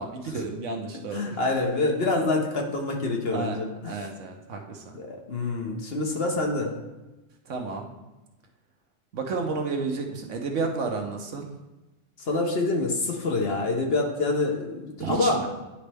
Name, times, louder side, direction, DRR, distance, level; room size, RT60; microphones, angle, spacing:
voice 1, 0.0-1.4 3.3-3.6 3.8-5.0 7.5-7.9 9.1-11.5 15.0-15.5, right 4 dB, 75° right, 3 dB, 1.2 m, -31 dB
voice 2, 1.1-3.9 4.9-6.7 12.3-15.5, left 2 dB, 55° left, 0 dB, 1.2 m, -26 dB
10.0 x 4.2 x 3.4 m, 1.1 s
omnidirectional pair, 1.3 m